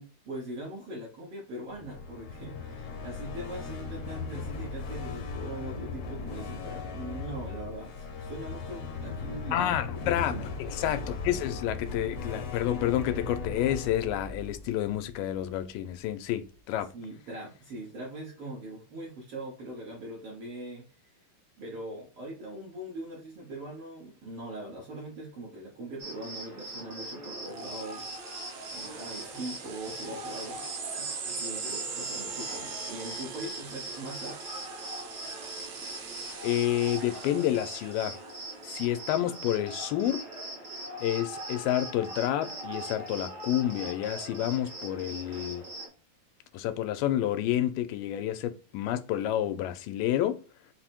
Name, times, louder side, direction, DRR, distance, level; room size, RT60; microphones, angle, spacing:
voice 1, 0.0-10.5 16.9-20.9 21.6-28.1 28.7-30.7 30.9-34.4, right 1 dB, 65° right, 1.5 m, -41 dB
sound 1, 1.7-15.7, left 4 dB, 75° left, 1.5 m, -38 dB
voice 2, 9.5-16.9 36.4-38.2 38.6-40.3 41.0-45.7 46.5-50.4, left 12 dB, 90° left, 2.3 m, -29 dB
Cricket, 26.0-45.9, right 1 dB, 45° right, 1.3 m, -41 dB
sound 2, 27.5-38.6, right 5 dB, 85° right, 1.4 m, -42 dB
5.3 x 2.1 x 4.4 m
omnidirectional pair, 3.9 m